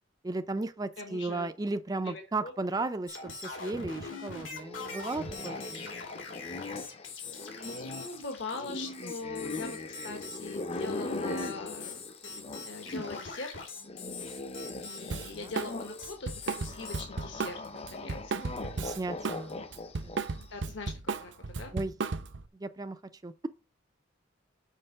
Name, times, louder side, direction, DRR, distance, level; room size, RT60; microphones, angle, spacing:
voice 1, 0.2-5.9 15.4-15.5 18.0-18.1 18.8-19.5 20.0-20.2 21.7-21.9 22.6-23.5, right 2 dB, 20° right, 0.4 m, -35 dB
voice 2, 1.0-1.5 1.9-2.8 7.5-13.5 14.8-16.3 16.6-17.6 17.9-18.6 20.5-20.9 21.2-21.3 21.6-21.7, left 3 dB, 65° left, 1.3 m, -41 dB
sound 1, 3.1-17.0, left 4 dB, 85° left, 2.7 m, -43 dB
sound 2, 4.6-13.3 13.6-20.4, left 2 dB, 30° left, 0.6 m, -40 dB
Drum kit, 15.1-15.7 16.0-19.4 19.7-22.5, right 4 dB, 65° right, 0.6 m, -35 dB
6.5 x 5.1 x 6.6 m
head